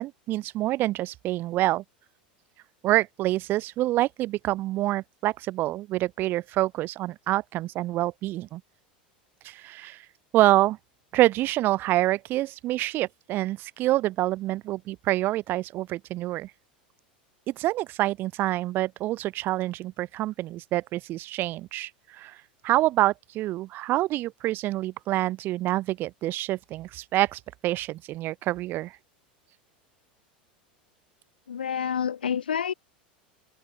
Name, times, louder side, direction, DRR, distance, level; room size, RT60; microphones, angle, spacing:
voice 1, 0.0-1.8 2.8-8.6 9.4-10.0 10.3-10.8 11.1-16.5 17.5-22.3 22.6-28.9, right 16 dB, 45° right, 0.7 m, -26 dB
voice 2, 31.5-32.7, left 8 dB, 85° left, 0.5 m, -28 dB
open air
hypercardioid pair, 85°, 5 cm